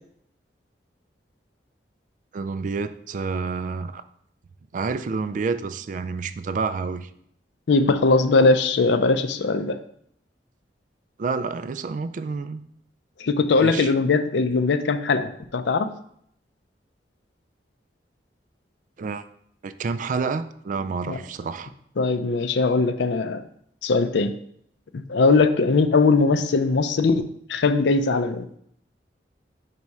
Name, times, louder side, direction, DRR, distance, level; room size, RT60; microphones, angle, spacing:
voice 1, 2.3-4.0 4.7-7.1 11.2-12.6 13.6-13.9 19.0-19.2 19.6-21.7, right 4 dB, 45° right, 11 dB, 0.3 m, -29 dB
voice 2, 7.7-9.8 13.2-15.9 21.1-21.2 22.0-23.4 23.8-24.3 24.9-28.5, left 3 dB, 80° left, 11 dB, 0.5 m, -20 dB
5.3 x 4.2 x 4.7 m, 0.69 s
head